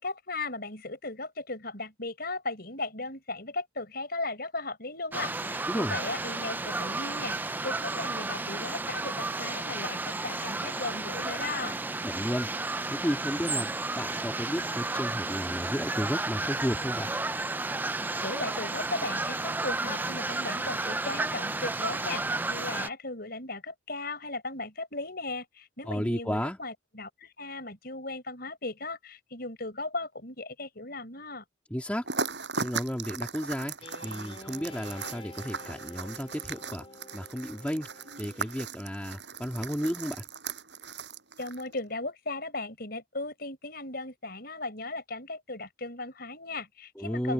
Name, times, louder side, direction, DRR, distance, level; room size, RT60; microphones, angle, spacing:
voice 1, 0.0-11.8 18.2-31.4 41.4-47.3, left 2 dB, 50° left, 6.3 m, -37 dB
sound 1, 5.1-22.9, right 2 dB, 10° right, 0.4 m, -32 dB
voice 2, 12.0-12.5 12.9-17.1 25.9-26.6 31.7-32.1 32.6-33.8 34.0-36.9 37.1-37.9 38.2-40.2 47.0-47.3, equal, 5° left, 1.8 m, -33 dB
sound 2, 32.0-41.8, right 4 dB, 60° right, 7.1 m, -38 dB
Guitar, 33.8-38.5, left 2 dB, 30° left, 3.5 m, -49 dB
head